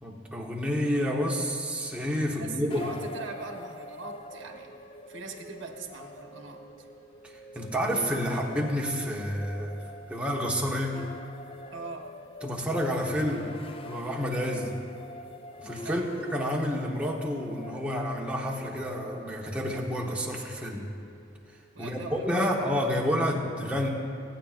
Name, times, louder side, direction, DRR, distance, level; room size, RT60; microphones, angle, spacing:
voice 1, 0.0-2.9 7.5-9.7 10.1-11.1 12.4-13.5 13.8-14.7 15.6-16.0 16.3-20.9 21.8-23.9, equal, 5° right, -2 dB, 1.1 m, -29 dB
voice 2, 2.4-4.7 5.1-6.9 11.7-12.1 15.8-16.1 21.7-22.3, right 3 dB, 70° right, 2 dB, 1.2 m, -41 dB
sound 1, 2.7-21.8, left 2 dB, 30° left, 0.4 m, -45 dB
23.0 x 9.2 x 2.5 m, 2.4 s
head